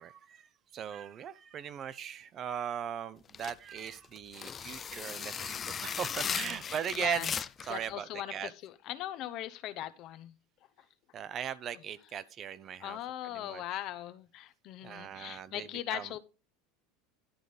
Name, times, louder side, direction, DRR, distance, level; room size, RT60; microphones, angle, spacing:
voice 1, 0.0-7.3 7.6-8.5 11.1-13.6 14.8-16.2, right 8 dB, 35° right, 0.6 m, -39 dB
sound 1, 3.3-7.8, left 7 dB, 25° left, 0.3 m, -37 dB
voice 2, 6.2-7.3 7.7-10.3 12.8-16.2, left 13 dB, 50° left, 0.7 m, -40 dB
11.5 x 3.9 x 5.0 m
supercardioid pair, 125°, 0 cm